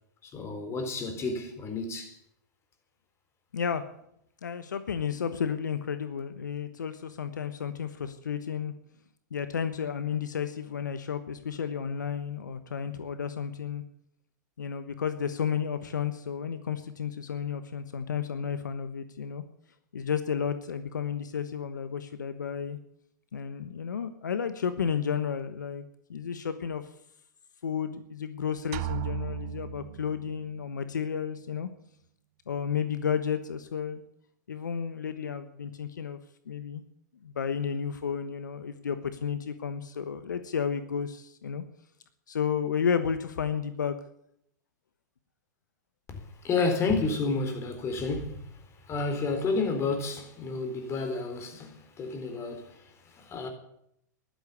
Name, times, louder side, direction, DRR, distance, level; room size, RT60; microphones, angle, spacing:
voice 1, 0.2-2.1 46.1-48.5 48.9-53.5, left 3 dB, 30° left, 4.0 m, -31 dB
voice 2, 3.5-3.8 4.4-8.7 9.3-13.8 14.6-19.4 19.9-22.8 23.3-25.8 26.1-26.8 27.6-31.7 32.5-34.0 34.5-36.2 36.5-36.8 37.2-41.6 42.3-44.0, left 7 dB, 80° left, 1.1 m, -32 dB
sound 1, 28.7-30.6, right 11 dB, 50° right, 0.8 m, -35 dB
13.5 x 12.0 x 8.5 m
hypercardioid pair, 105°, 10 cm